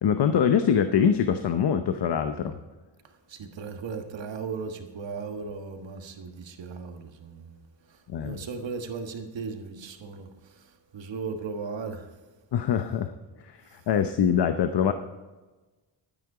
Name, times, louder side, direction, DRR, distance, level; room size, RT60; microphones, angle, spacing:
voice 1, 0.0-2.5 8.1-8.4 12.5-13.1 13.4-14.9, left 8 dB, 65° left, 0.8 m, -24 dB
voice 2, 3.3-7.6 7.9-12.1 13.7-13.8, right 5 dB, 75° right, 1.5 m, -37 dB
12.5 x 9.4 x 4.9 m
wide cardioid pair, 125°, 44 cm